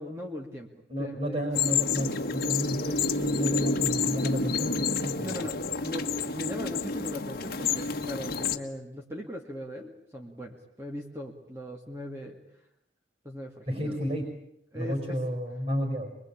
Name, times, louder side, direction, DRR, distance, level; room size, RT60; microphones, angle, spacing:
voice 1, 0.0-1.4 5.2-12.4 13.2-14.1 14.7-15.2, left 1 dB, 15° right, 0 dB, 2.2 m, -39 dB
voice 2, 0.9-5.4 13.7-14.3 14.7-16.1, equal, 35° right, 4 dB, 5.0 m, -32 dB
sound 1, 1.5-8.6, left 4 dB, 50° left, 1.5 m, -29 dB
25.0 x 22.5 x 8.6 m, 0.77 s
head